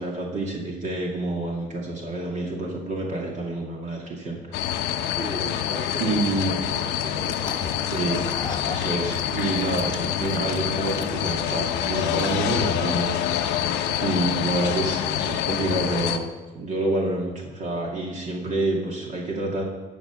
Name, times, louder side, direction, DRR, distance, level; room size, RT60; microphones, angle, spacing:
voice 1, 0.0-4.4 6.0-6.6 7.9-8.3 8.6-13.2 14.0-16.3 16.5-19.6, right 2 dB, 45° right, -2 dB, 2.2 m, -28 dB
sound 1, 4.5-16.2, left 10 dB, 90° left, 0.8 m, -26 dB
voice 2, 5.1-7.6, right 1 dB, 15° right, -1 dB, 2.6 m, -38 dB
sound 2, 7.1-12.9, left 4 dB, 25° left, 1.0 m, -38 dB
14.5 x 5.4 x 7.1 m, 1.3 s
cardioid pair, 110°, 17 cm